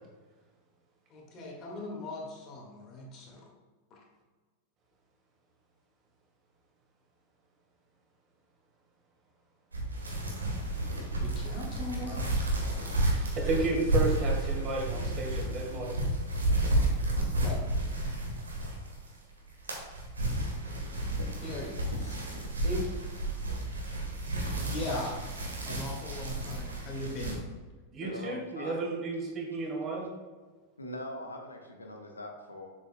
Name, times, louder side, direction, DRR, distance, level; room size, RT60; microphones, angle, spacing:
voice 1, 1.1-3.5 3.9-4.0 11.2-12.3 17.4-17.6 21.4-22.2 22.6-22.9 24.6-25.2 25.6-27.4, left 1 dB, 35° left, -1 dB, 1.9 m, -39 dB
sound 1, 9.7-19.1 19.4-27.3, right 1 dB, 75° right, 1.3 m, -31 dB
voice 2, 13.0-16.1 27.9-30.1, right 3 dB, 30° right, -1 dB, 2.0 m, -33 dB
voice 3, 28.0-28.8 30.8-32.7, left 1 dB, 80° left, 2 dB, 1.1 m, -41 dB
7.3 x 7.0 x 2.2 m, 1.4 s
figure-of-eight pair, 90°, 0 cm